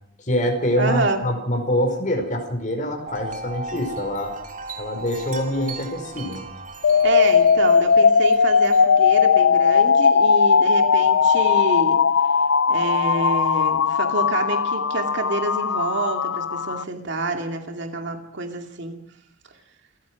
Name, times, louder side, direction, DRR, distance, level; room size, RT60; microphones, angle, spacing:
voice 1, 0.2-4.4 4.8-6.5, equal, 40° left, 4 dB, 5.1 m, -25 dB
voice 2, 0.8-1.2 7.0-12.0 12.7-19.0, right 2 dB, 65° right, 4 dB, 2.6 m, -27 dB
Wind chime, 3.1-9.6, right 2 dB, 40° right, 2.5 m, -37 dB
sound 1, 6.8-16.8, left 6 dB, 80° left, 0.7 m, -18 dB
28.0 x 15.0 x 6.2 m, 0.76 s
head